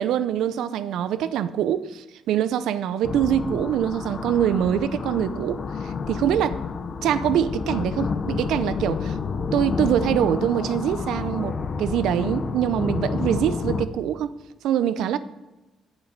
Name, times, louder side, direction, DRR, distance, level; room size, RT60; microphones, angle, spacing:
voice 1, 0.0-6.6 7.0-9.2 9.5-14.3 14.6-15.2, right 10 dB, 85° right, 14 dB, 0.6 m, -24 dB
sound 1, 3.0-13.9, left 4 dB, 45° left, 0.8 m, -29 dB
8.8 x 7.2 x 6.7 m, 1.1 s
cardioid pair, 90°, 0 cm